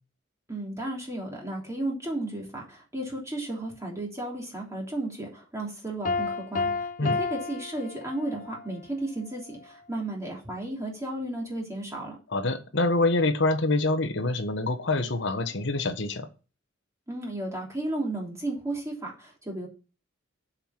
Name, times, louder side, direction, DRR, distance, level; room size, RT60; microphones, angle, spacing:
voice 1, 0.5-12.2 17.1-19.7, right 1 dB, 15° right, 3.1 m, -34 dB
Piano, 6.0-8.6, left 4 dB, 45° left, 0.8 m, -31 dB
voice 2, 12.3-16.3, left 2 dB, 65° left, 1.3 m, -26 dB
7.5 x 5.8 x 7.3 m
head